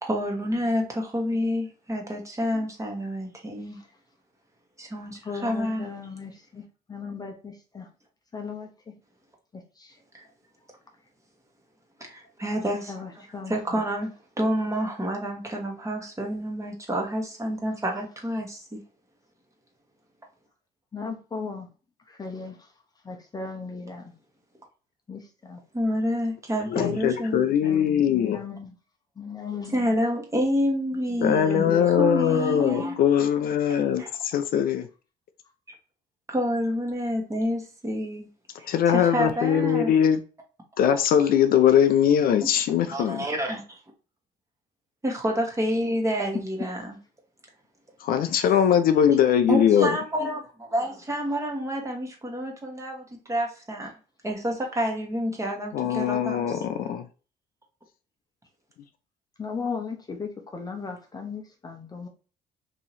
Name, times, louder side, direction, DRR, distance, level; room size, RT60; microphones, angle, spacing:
voice 1, 0.1-3.8 4.8-5.9 10.1-10.2 12.0-18.8 25.7-27.5 29.7-31.7 32.0-32.9 34.0-34.1 36.3-38.3 38.9-40.0 42.9-43.8 45.0-47.0 49.5-53.9 54.2-56.6, equal, 15° right, 1 dB, 1.2 m, -28 dB
voice 2, 5.2-6.6 6.9-7.9 8.3-9.0 9.8-10.0 12.9-13.8 20.9-21.7 22.1-22.7 23.0-24.1 25.1-25.6 27.6-28.7 29.2-29.9 31.4-31.9 59.4-62.1, left 5 dB, 25° left, 3 dB, 0.7 m, -36 dB
voice 3, 26.7-28.4 31.2-34.9 38.7-40.2 40.8-43.2 48.0-50.0 55.7-57.1, left 9 dB, 60° left, 9 dB, 0.4 m, -21 dB
3.0 x 2.7 x 3.9 m, 0.36 s
cardioid pair, 110°, 17 cm